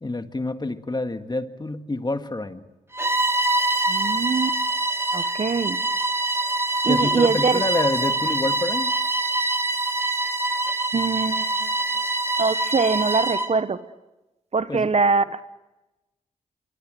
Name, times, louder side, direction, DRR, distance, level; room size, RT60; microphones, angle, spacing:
voice 1, 0.0-2.7 6.8-8.9 14.7-14.9, left 2 dB, 30° left, 8 dB, 2.0 m, -27 dB
Bowed string instrument, 2.9-13.6, right 2 dB, 15° right, 2.6 m, -24 dB
voice 2, 3.9-4.6 5.1-5.8 6.8-7.6 10.9-11.7 12.4-13.8 14.5-15.4, right 4 dB, 50° right, 13 dB, 1.2 m, -23 dB
25.5 x 24.0 x 7.8 m, 1.0 s
cardioid pair, 45°, 15 cm